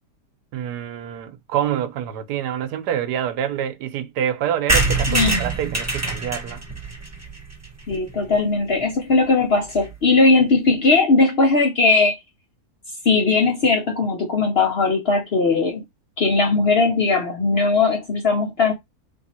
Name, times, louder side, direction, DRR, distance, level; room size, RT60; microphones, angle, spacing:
voice 1, 0.5-6.6, right 10 dB, 85° right, 1.2 m, -26 dB
sound 1, 4.7-8.4 8.8-8.9 9.1-9.2 9.4-9.5 9.7-10.0, right 2 dB, 15° right, 0.7 m, -24 dB
voice 2, 5.1-5.4 7.9-12.2 13.0-15.8 16.2-18.7, left 3 dB, 55° left, 0.7 m, -18 dB
3.5 x 2.6 x 4.3 m
omnidirectional pair, 1.7 m